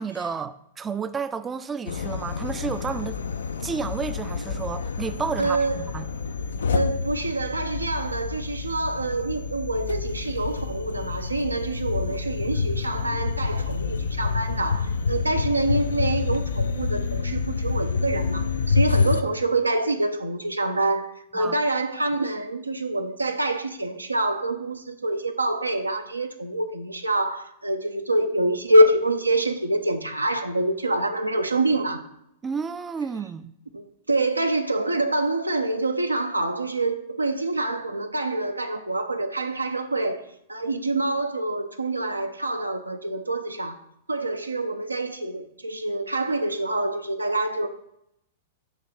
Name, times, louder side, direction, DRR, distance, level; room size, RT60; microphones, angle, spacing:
voice 1, 0.0-3.2 3.6-6.1 21.4-21.6 32.4-33.5, right 5 dB, 15° right, 0.4 m, -31 dB
sound 1, 1.9-19.2, left 5 dB, 65° left, 0.4 m, -28 dB
voice 2, 5.4-5.9 6.7-32.1 33.7-40.2 40.5-43.8 44.1-47.7, right 2 dB, 85° right, 0.6 m, -26 dB
7.1 x 3.1 x 5.9 m
figure-of-eight pair, 100°, 0 cm